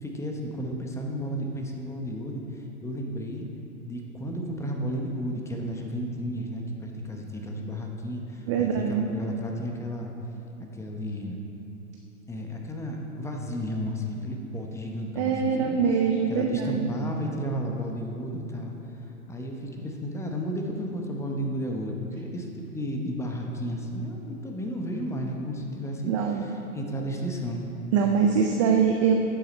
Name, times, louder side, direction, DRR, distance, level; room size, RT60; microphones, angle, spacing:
voice 1, 0.0-3.4 3.8-10.1 10.7-11.4 12.3-15.8 16.3-27.6, equal, 5° left, 1 dB, 0.8 m, -33 dB
voice 2, 8.5-9.0 15.2-16.9 26.1-26.5 27.9-29.1, right 6 dB, 25° right, 2 dB, 0.4 m, -23 dB
10.0 x 7.7 x 5.2 m, 2.9 s
hypercardioid pair, 120°, 43 cm